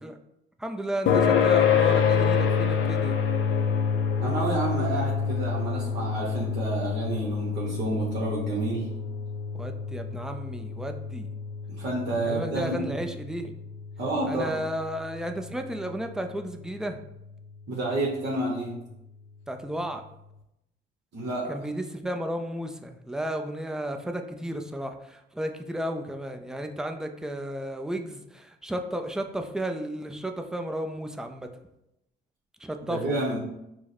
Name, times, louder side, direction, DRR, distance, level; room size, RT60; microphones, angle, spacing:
voice 1, 0.6-3.2 9.5-11.3 12.3-13.5 14.3-17.0 19.5-20.0 21.5-31.5 32.6-33.2, right 1 dB, 5° right, 5 dB, 0.4 m, -33 dB
sound 1, 1.1-16.0, left 6 dB, 75° left, 0.6 m, -27 dB
voice 2, 4.2-8.9 11.7-13.0 14.0-14.6 17.7-18.7 21.1-21.5 32.9-33.4, right 2 dB, 65° right, -5 dB, 1.1 m, -29 dB
4.7 x 2.1 x 4.2 m, 0.84 s
cardioid pair, 90°, 20 cm